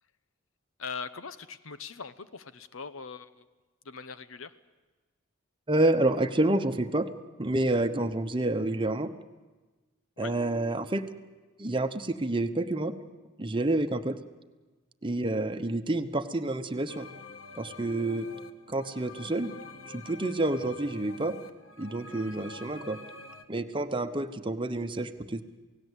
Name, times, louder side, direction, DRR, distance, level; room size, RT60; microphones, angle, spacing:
voice 1, 0.8-3.4 3.8-4.5 10.2-10.3, left 5 dB, 90° left, 13 dB, 0.9 m, -41 dB
voice 2, 5.7-7.1 7.4-9.1 10.2-11.0 11.6-12.9 13.4-14.2 15.0-17.1 17.6-18.3 18.7-19.5 19.9-21.3 21.8-23.0 23.5-25.4, right 2 dB, 25° right, 7 dB, 1.0 m, -28 dB
sound 1, 16.9-23.4, left 3 dB, 70° left, 1.5 m, -47 dB
28.0 x 17.5 x 8.2 m, 1.3 s
head